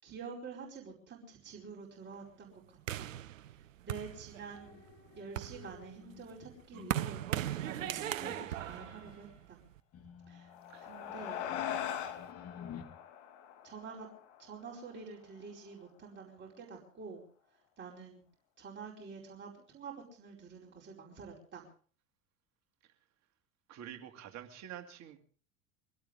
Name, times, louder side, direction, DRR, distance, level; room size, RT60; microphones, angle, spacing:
voice 1, 0.0-3.1 3.8-4.8 5.1-9.6 10.3-10.5 10.8-11.4 13.6-14.1 14.4-17.2 17.8-18.2 18.6-21.7, right 5 dB, 25° right, -2 dB, 4.7 m, -48 dB
sound 1, 2.9-4.7 5.2-9.8, right 12 dB, 70° right, 0.7 m, -38 dB
sound 2, 4.5-9.3 9.9-12.8, left 9 dB, 35° left, 3.1 m, -51 dB
sound 3, 10.4-15.1, left 9 dB, 55° left, 2.4 m, -41 dB
voice 2, 23.7-25.2, right 10 dB, 40° right, 6 dB, 2.3 m, -47 dB
22.5 x 16.5 x 3.7 m, 0.42 s
figure-of-eight pair, 75°, 40 cm